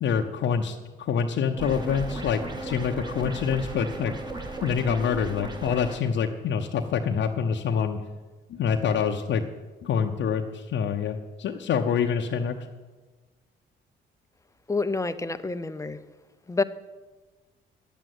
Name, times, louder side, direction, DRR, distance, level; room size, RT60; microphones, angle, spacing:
voice 1, 0.0-4.2 4.6-8.0 8.5-9.4 9.8-12.5, left 7 dB, 70° left, 3 dB, 0.8 m, -26 dB
sound 1, 1.6-6.0, right 2 dB, 20° right, 2.4 m, -35 dB
voice 2, 14.7-16.0 16.5-16.6, left 3 dB, 15° left, 12 dB, 0.7 m, -28 dB
10.5 x 7.7 x 9.4 m, 1.3 s
cardioid pair, 90°, 20 cm